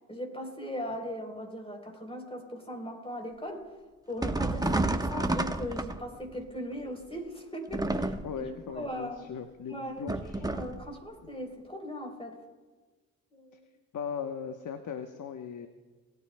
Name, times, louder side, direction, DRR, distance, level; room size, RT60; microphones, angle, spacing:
voice 1, 0.1-3.6 4.1-9.2 9.7-10.1 10.4-12.4 13.3-13.6, equal, 15° left, 3 dB, 3.6 m, -39 dB
sound 1, 4.2-6.3 7.7-8.5 10.1-10.8, right 2 dB, 10° right, 1.0 m, -30 dB
voice 2, 8.2-10.5 13.9-15.7, left 7 dB, 55° left, 7 dB, 1.0 m, -38 dB
20.5 x 9.5 x 2.2 m, 1.3 s
hypercardioid pair, 40°, 38 cm